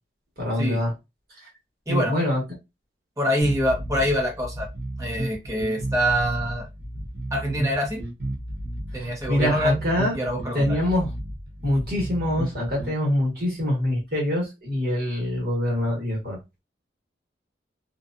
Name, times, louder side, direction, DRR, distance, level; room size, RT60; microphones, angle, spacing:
voice 1, 0.4-0.9 1.9-2.4 8.9-10.1 10.5-11.1 11.6-16.6, left 1 dB, 55° right, -3 dB, 1.4 m, -25 dB
voice 2, 3.2-4.7 5.0-6.7 7.3-8.0 8.9-9.9 10.1-10.8, equal, 20° right, 1 dB, 0.7 m, -25 dB
sound 1, 3.4-13.0, right 1 dB, 85° right, 0.8 m, -33 dB
2.5 x 2.2 x 2.5 m, 0.24 s
head